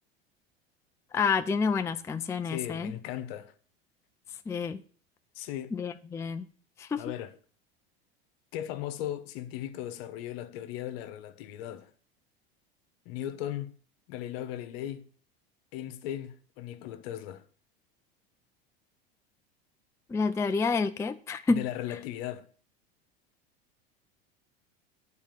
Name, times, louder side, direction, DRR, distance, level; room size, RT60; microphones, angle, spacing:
voice 1, 1.1-2.9 4.5-4.8 5.7-6.5 6.8-7.0 20.1-21.6, left 4 dB, 10° left, 0.4 m, -29 dB
voice 2, 2.4-3.5 5.3-5.7 7.0-7.3 8.5-11.9 13.0-13.7 14.1-15.0 15.7-17.4 21.5-22.5, left 12 dB, 65° left, 1.0 m, -37 dB
8.8 x 4.3 x 7.3 m
hypercardioid pair, 100°, 32 cm